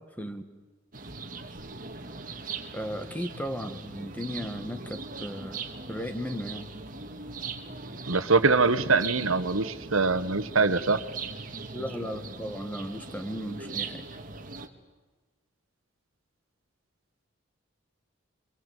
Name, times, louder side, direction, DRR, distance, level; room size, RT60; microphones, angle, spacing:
sound 1, 0.9-14.7, right 4 dB, 40° right, 1.9 m, -40 dB
voice 1, 2.7-6.7 11.7-14.0, equal, 10° left, 8 dB, 1.8 m, -36 dB
voice 2, 8.1-11.0, right 4 dB, 85° right, 12 dB, 1.4 m, -23 dB
27.0 x 23.0 x 8.3 m, 1.3 s
head